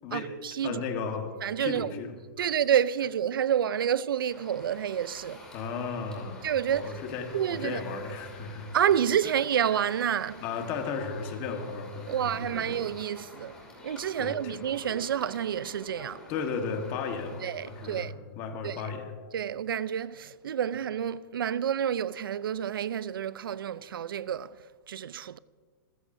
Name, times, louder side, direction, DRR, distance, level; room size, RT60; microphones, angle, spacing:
voice 1, 0.1-0.8 1.4-1.9 2.4-5.5 6.4-6.9 7.3-7.8 8.7-10.4 12.1-16.2 17.4-18.1 18.6-18.8 19.3-25.4, right 9 dB, 80° right, 0.6 m, -29 dB
voice 2, 0.6-1.3 1.6-2.5 5.5-8.7 10.4-12.7 14.2-14.6 16.3-19.1, left 5 dB, 25° left, 1.4 m, -35 dB
sound 1, 4.3-18.0, left 1 dB, 5° left, 2.6 m, -48 dB
27.0 x 14.5 x 2.7 m
hypercardioid pair, 180°, 12 cm